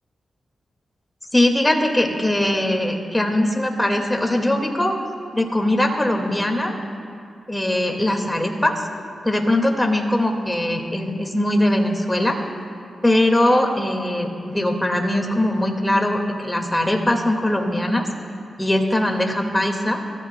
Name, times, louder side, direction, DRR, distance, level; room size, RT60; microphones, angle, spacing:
voice 1, 1.3-4.9 5.3-6.7 7.5-8.8 9.2-12.4 13.0-18.0 18.6-20.0, left 1 dB, 10° left, 2 dB, 1.9 m, -21 dB
29.5 x 14.0 x 2.2 m, 2.4 s
cardioid pair, 65°, 0 cm